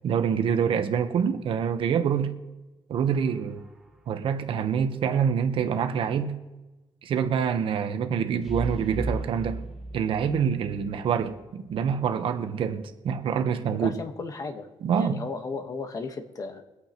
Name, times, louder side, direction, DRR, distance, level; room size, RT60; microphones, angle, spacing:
voice 1, 0.0-2.3 2.9-3.6 4.1-6.3 7.0-9.6 9.9-13.9 14.8-15.2, right 7 dB, 65° right, 8 dB, 1.0 m, -26 dB
sound 1, 3.1-4.0 8.4-11.4 11.7-11.8, right 2 dB, ahead, 1.3 m, -37 dB
voice 2, 13.7-14.7 14.9-16.6, left 4 dB, 35° left, 6 dB, 1.3 m, -35 dB
24.0 x 8.7 x 3.0 m, 1.1 s
cardioid pair, 135°, 10 cm